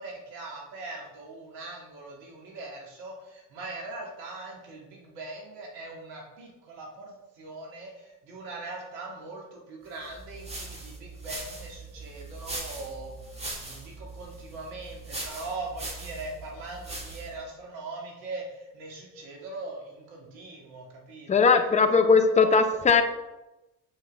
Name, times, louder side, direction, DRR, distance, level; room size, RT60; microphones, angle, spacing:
voice 1, 0.0-22.0 22.3-22.9, right 2 dB, 65° right, -2 dB, 2.3 m, -41 dB
sound 1, 10.0-17.4, right 2 dB, 15° right, 1.9 m, -40 dB
voice 2, 21.3-23.0, left 5 dB, 15° left, 7 dB, 0.7 m, -19 dB
6.6 x 5.7 x 3.6 m, 0.99 s
hypercardioid pair, 60°, 47 cm